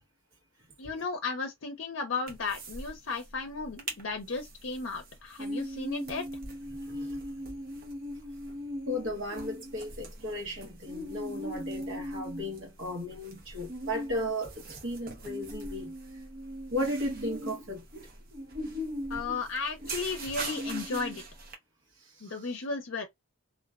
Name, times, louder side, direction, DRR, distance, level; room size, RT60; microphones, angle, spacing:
voice 1, 0.8-6.3 19.1-21.2 22.2-23.1, left 4 dB, 60° left, 0.6 m, -34 dB
sound 1, 2.3-2.9 3.2-3.3 3.6-4.0 4.4-21.5, equal, 40° right, 0.7 m, -39 dB
voice 2, 6.9-7.2 8.9-15.9 16.7-17.8, left 1 dB, 65° right, 1.0 m, -35 dB
2.4 x 2.2 x 2.3 m
head